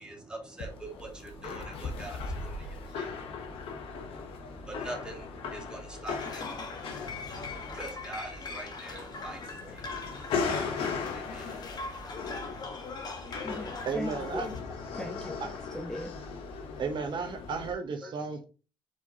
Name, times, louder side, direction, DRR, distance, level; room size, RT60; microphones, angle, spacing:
voice 1, 0.0-11.7, right 2 dB, 10° right, 1.9 m, -45 dB
sound 1, 0.6-17.7, left 5 dB, 80° left, 0.9 m, -38 dB
sound 2, 6.1-14.6, left 3 dB, 45° left, 1.1 m, -41 dB
voice 2, 13.3-14.5 14.9-16.3 18.0-18.1, left 1 dB, 5° left, 0.6 m, -40 dB
voice 3, 13.8-14.5 16.8-18.5, right 5 dB, 55° right, 0.8 m, -33 dB
4.5 x 4.4 x 2.7 m
cardioid pair, 95°, 9 cm